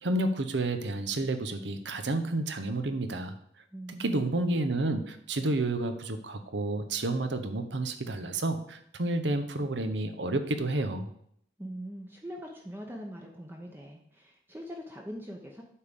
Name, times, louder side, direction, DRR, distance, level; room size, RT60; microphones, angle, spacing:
voice 1, 0.0-3.3 4.0-11.1, right 2 dB, 75° right, 8 dB, 0.9 m, -30 dB
voice 2, 3.7-4.3 11.6-15.6, equal, 10° right, 0 dB, 0.8 m, -42 dB
8.6 x 3.7 x 6.8 m, 0.69 s
head